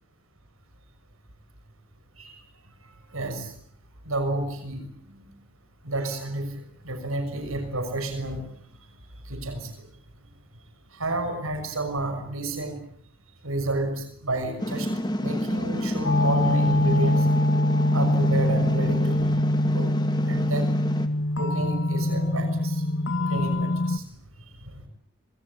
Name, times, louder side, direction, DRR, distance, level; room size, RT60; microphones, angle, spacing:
voice 1, 3.1-3.5 4.0-5.3 5.8-6.5 6.8-8.5 9.3-9.9 10.9-12.7 13.4-14.9 15.2-17.3 17.9-19.3 19.6-19.9 20.2-20.7 21.4-22.8 23.2-24.0, right 2 dB, 90° right, 7 dB, 6.4 m, -31 dB
sound 1, 14.6-21.1, left 1 dB, 20° left, 2.1 m, -29 dB
sound 2, 16.0-24.0, left 1 dB, 60° left, 1.6 m, -23 dB
27.0 x 25.5 x 8.4 m, 0.63 s
head